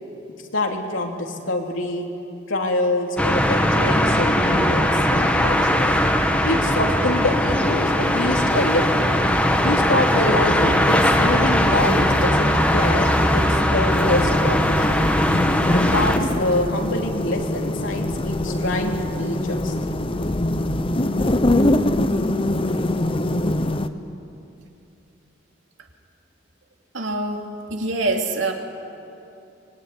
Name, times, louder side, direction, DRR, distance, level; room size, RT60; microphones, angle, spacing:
voice 1, 0.5-2.1 2.5-6.0 6.4-9.1 9.6-14.9 15.7-19.7, left 1 dB, 90° left, 1 dB, 3.3 m, -25 dB
sound 1, 3.2-16.2, equal, 5° left, 1.6 m, -19 dB
sound 2, 13.9-23.9, left 1 dB, 30° left, 0.9 m, -23 dB
voice 2, 26.9-28.5, right 2 dB, 75° right, 2 dB, 2.8 m, -25 dB
25.0 x 22.0 x 9.9 m, 2.7 s
head